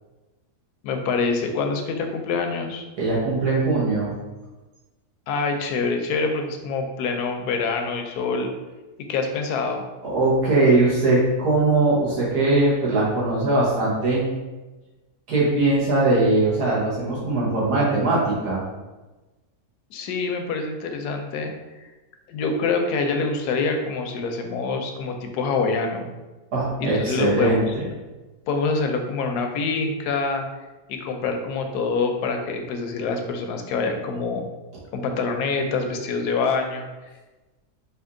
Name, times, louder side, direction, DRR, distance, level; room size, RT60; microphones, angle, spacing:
voice 1, 0.8-2.8 5.3-8.5 9.1-9.9 19.9-21.5 21.8-21.9 22.3-26.1 26.8-27.7 28.5-30.4 30.9-34.5 34.9-36.9, left 4 dB, 80° left, 4 dB, 1.1 m, -25 dB
voice 2, 3.0-4.1 10.0-14.3 15.3-18.6 26.5-27.6, right 2 dB, 75° right, -6 dB, 1.9 m, -20 dB
4.4 x 2.8 x 3.7 m, 1.2 s
omnidirectional pair, 1.7 m